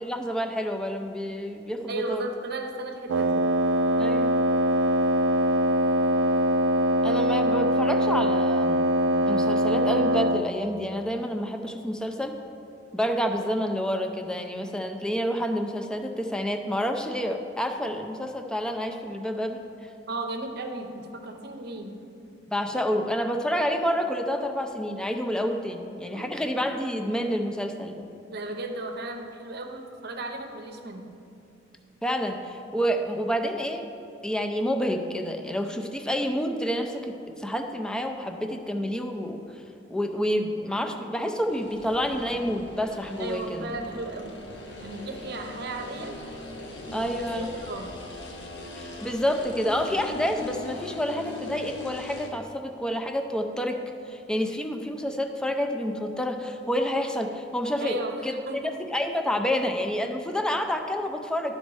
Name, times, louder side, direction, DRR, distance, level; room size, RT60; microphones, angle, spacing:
voice 1, 0.0-2.2 4.0-4.3 7.0-8.8 9.3-12.3 12.9-19.9 22.5-28.1 32.0-33.9 34.2-39.6 39.9-43.7 46.9-47.5 48.7-53.8 54.1-58.0 58.2-58.4 58.9-61.5, equal, 5° left, 4 dB, 0.5 m, -29 dB
voice 2, 1.9-3.4 20.1-22.0 26.1-26.3 28.3-31.1 43.2-44.4 44.8-46.2 47.0-47.1 47.4-48.0 57.8-58.7, right 2 dB, 60° right, 5 dB, 0.7 m, -35 dB
Wind instrument woodwind instrument, 3.1-10.5, right 1 dB, 80° right, 0.4 m, -23 dB
sound 1, 41.5-52.3, left 2 dB, 65° left, 1.1 m, -40 dB
11.0 x 4.2 x 4.7 m, 2.6 s
head